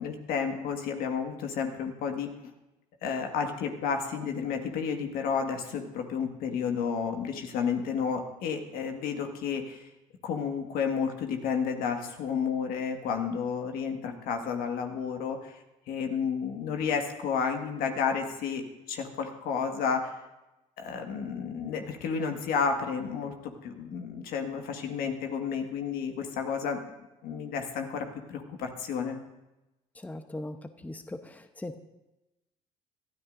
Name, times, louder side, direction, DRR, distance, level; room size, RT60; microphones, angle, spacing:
voice 1, 0.0-2.3 3.0-9.9 10.2-15.6 15.9-18.6 18.9-20.1 20.8-23.3 23.6-26.8 27.2-29.2, left 6 dB, 65° left, 4 dB, 1.8 m, -31 dB
voice 2, 29.9-30.6 30.8-31.8, left 1 dB, 10° left, 8 dB, 0.9 m, -39 dB
22.5 x 13.0 x 2.6 m, 0.99 s
hypercardioid pair, 65°, 16 cm